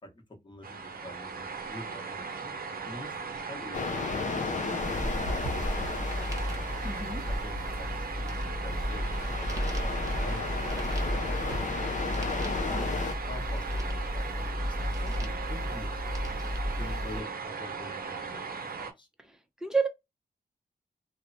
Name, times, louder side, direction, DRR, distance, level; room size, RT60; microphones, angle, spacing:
voice 1, 0.0-2.5 2.9-5.1 7.3-12.9 13.3-15.9 16.8-19.1, left 1 dB, 30° left, 1.0 m, -47 dB
sound 1, 0.6-18.9, right 5 dB, 60° right, 0.6 m, -38 dB
sound 2, 3.7-13.2, left 5 dB, 50° left, 0.5 m, -35 dB
sound 3, 4.7-17.2, equal, 20° right, 0.9 m, -33 dB
voice 2, 6.8-7.2 19.2-19.9, right 4 dB, 5° right, 0.6 m, -30 dB
3.1 x 2.1 x 2.6 m
wide cardioid pair, 95°, 17 cm